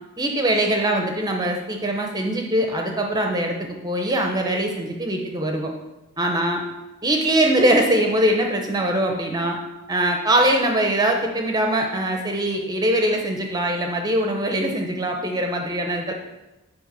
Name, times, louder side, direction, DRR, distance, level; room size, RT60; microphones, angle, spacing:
voice 1, 0.2-5.7 6.2-6.6 7.0-9.6 9.9-16.1, right 1 dB, 15° right, 2 dB, 0.7 m, -22 dB
7.7 x 5.4 x 6.7 m, 1.0 s
head